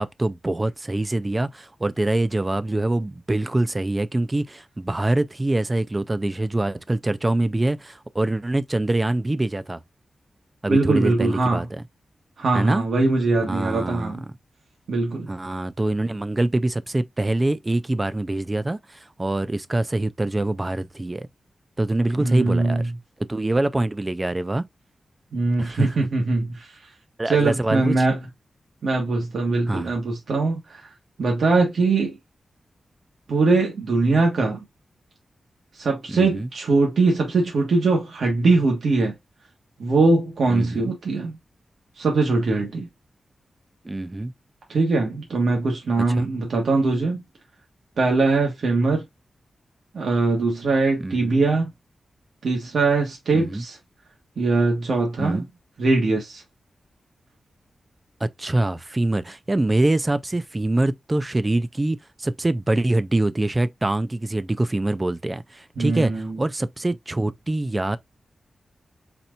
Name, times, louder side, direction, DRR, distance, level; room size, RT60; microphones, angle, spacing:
voice 1, 0.0-9.8 10.6-11.8 12.5-12.8 13.5-14.2 15.3-21.3 21.8-22.9 23.3-24.6 25.6-25.9 27.2-28.1 29.7-29.9 36.1-36.5 40.5-40.8 43.8-44.3 46.2-46.3 51.0-51.3 53.3-53.6 55.2-55.4 58.2-68.0, right 2 dB, 20° right, 0.4 m, -24 dB
voice 2, 10.7-11.6 12.4-14.2 14.9-15.3 22.2-22.9 25.3-26.7 27.3-28.2 28.8-30.9 31.2-32.2 33.3-34.6 35.8-39.1 39.8-41.4 42.0-42.9 44.7-47.2 48.0-49.0 49.9-51.7 52.4-53.8 54.4-55.5 55.8-56.4 65.8-66.4, right 3 dB, 70° right, 1.5 m, -21 dB
4.3 x 4.3 x 2.6 m
wide cardioid pair, 155°, 0 cm